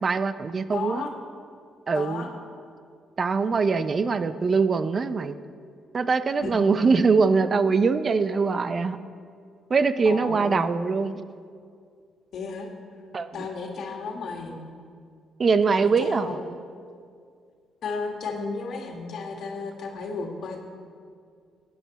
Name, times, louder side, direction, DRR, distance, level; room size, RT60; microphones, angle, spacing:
voice 1, 0.0-1.1 1.9-2.3 3.2-5.4 5.9-9.0 9.7-11.1 13.1-13.5 15.4-16.6, right 4 dB, 40° right, 12 dB, 0.5 m, -23 dB
voice 2, 0.7-1.1 2.0-2.3 6.4-6.7 10.1-10.8 12.3-12.7 13.3-14.6 15.7-16.4 17.8-20.6, left 4 dB, 70° left, 2 dB, 1.7 m, -34 dB
15.0 x 9.5 x 4.1 m, 2.2 s
cardioid pair, 90°, 0 cm